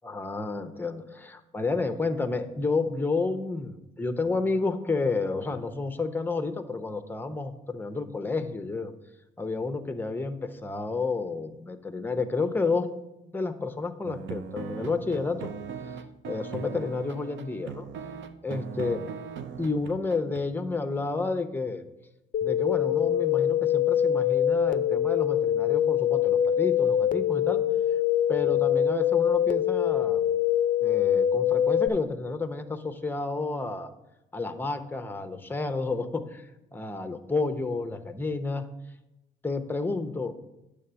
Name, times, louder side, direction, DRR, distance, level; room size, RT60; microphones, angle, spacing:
voice 1, 0.0-8.9 9.4-12.9 13.3-15.5 16.3-17.9 18.4-19.0 19.6-21.8 22.4-27.6 28.3-30.2 30.8-33.9 34.3-38.7 39.4-40.3, left 3 dB, 10° left, 8 dB, 0.7 m, -30 dB
sound 1, 14.0-20.4, right 6 dB, 70° right, 0.6 m, -39 dB
sound 2, 22.3-31.9, left 10 dB, 45° left, 0.4 m, -24 dB
9.5 x 3.4 x 6.8 m, 0.94 s
cardioid pair, 90°, 20 cm